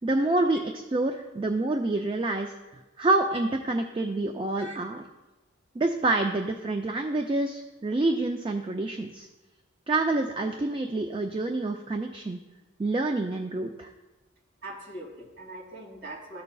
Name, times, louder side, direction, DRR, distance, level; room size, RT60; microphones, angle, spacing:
voice 1, 0.0-5.0 5.8-9.3 9.9-12.4 12.8-13.9, right 2 dB, 25° right, 5 dB, 0.3 m, -27 dB
voice 2, 14.6-16.4, right 2 dB, 55° right, -4 dB, 2.7 m, -41 dB
13.5 x 5.4 x 2.3 m, 1.1 s
head